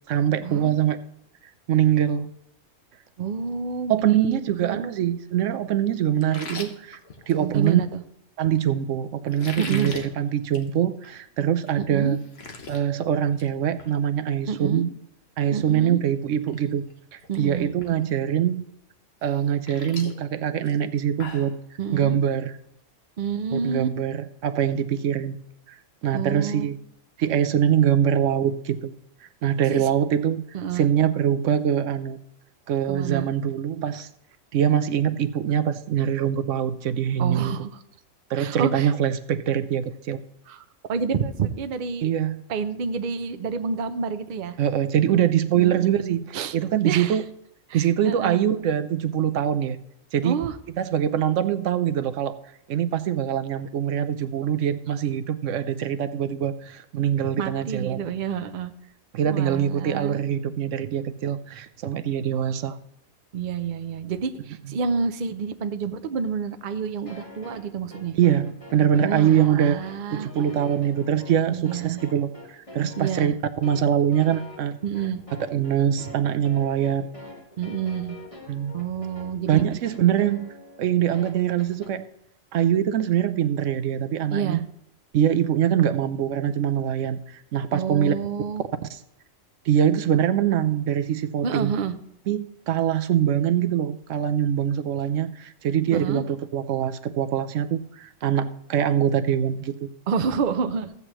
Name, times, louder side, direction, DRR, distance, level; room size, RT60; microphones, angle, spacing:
voice 1, 0.1-1.0 1.7-2.3 3.9-7.0 7.3-7.8 8.4-12.2 12.7-14.9 15.4-16.9 17.1-18.7 19.2-21.5 21.9-22.5 23.5-25.4 25.7-25.8 26.0-26.8 27.2-28.9 29.4-30.4 30.7-32.2 32.7-34.1 34.5-37.5 38.3-40.2 42.0-42.4 44.6-47.2 47.7-49.8 50.1-50.4 50.8-52.4 52.7-58.0 59.1-62.8 64.7-64.8 68.1-69.8 70.1-73.3 73.6-74.8 75.5-77.1 78.5-78.7 79.5-80.5 80.8-82.1 82.5-84.6 85.1-88.1 88.9-89.0 89.6-91.7 92.3-99.9, right 9 dB, 75° right, 10 dB, 0.9 m, -23 dB
voice 2, 3.2-4.9 7.4-8.0 9.6-9.9 11.8-12.2 14.5-14.8 15.5-16.0 17.3-17.7 21.8-22.2 23.2-23.9 26.1-26.7 29.7-29.9 30.5-30.9 32.9-33.3 37.2-37.8 38.4-38.9 40.5-42.1 42.5-44.6 45.5-46.0 46.3-46.5 46.8-47.2 47.7-48.4 50.2-50.6 57.4-58.7 59.2-60.2 63.3-68.2 69.0-70.3 71.5-72.0 73.0-73.3 74.8-75.2 77.6-78.2 78.7-79.6 84.3-84.6 87.7-88.6 91.4-91.9 95.9-96.2 100.1-100.9, right 6 dB, 50° right, 9 dB, 0.6 m, -29 dB
sound 1, 6.2-7.8 9.3-10.1 10.4-10.7 11.0-11.1 11.6-11.7 12.0-12.8 13.2-13.5 13.8-13.9 15.8-15.9 16.3-16.6 16.9-17.4 17.8-17.9 19.2-21.5, left 4 dB, 55° left, 1.4 m, -39 dB
sound 2, 67.1-81.9, left 1 dB, 25° left, 2.0 m, -44 dB
14.5 x 8.2 x 3.0 m, 0.76 s
omnidirectional pair, 1.4 m